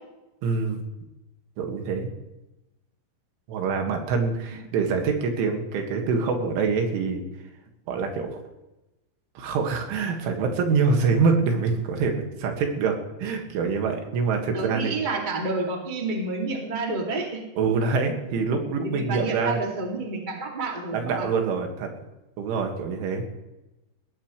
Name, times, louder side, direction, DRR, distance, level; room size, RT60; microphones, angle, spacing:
voice 1, 0.4-0.8 1.6-2.1 3.5-7.2 7.9-8.4 9.4-15.0 17.6-19.6 20.9-21.9 22.4-23.2, right 4 dB, 90° right, 3 dB, 4.4 m, -25 dB
voice 2, 14.5-17.4 18.8-21.3, right 3 dB, 20° right, 0 dB, 1.3 m, -29 dB
20.0 x 15.5 x 3.2 m, 0.98 s
omnidirectional pair, 5.4 m